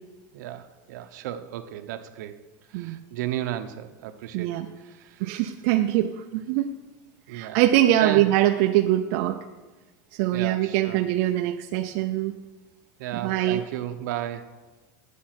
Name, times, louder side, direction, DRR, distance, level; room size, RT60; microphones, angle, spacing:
voice 1, 0.3-2.4 2.7-4.5 4.8-5.3 7.3-7.6 8.0-8.2 10.3-11.0 13.0-14.5, right 12 dB, 65° right, 8 dB, 0.9 m, -34 dB
voice 2, 4.3-4.7 5.2-6.7 7.3-9.4 10.1-12.3 13.1-13.6, right 13 dB, 45° right, 4 dB, 0.5 m, -23 dB
10.5 x 8.4 x 5.9 m, 1.2 s
supercardioid pair, 175°, 10 cm